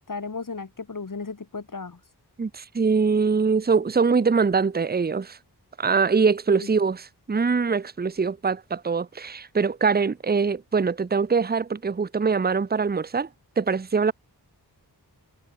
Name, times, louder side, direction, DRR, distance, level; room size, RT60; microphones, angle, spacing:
voice 1, 0.0-2.0 6.6-6.7, left 4 dB, 50° left, 2.2 m, -35 dB
voice 2, 2.4-5.4 5.8-13.3 13.6-14.1, right 5 dB, 25° right, 0.6 m, -23 dB
wide cardioid pair, 70°, 40 cm